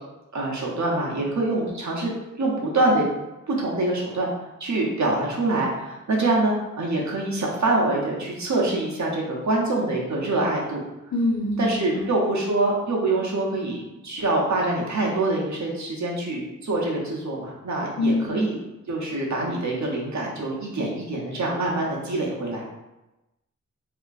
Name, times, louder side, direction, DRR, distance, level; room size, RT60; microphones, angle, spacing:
voice 1, 0.3-2.1 2.4-3.1 3.5-4.3 4.6-10.8 11.6-18.6 18.9-22.6, right 2 dB, 60° right, -3 dB, 0.7 m, -25 dB
voice 2, 11.1-12.1 18.0-18.4, left 2 dB, 60° left, -4 dB, 0.5 m, -25 dB
2.8 x 2.5 x 2.4 m, 0.99 s
wide cardioid pair, 70°, 32 cm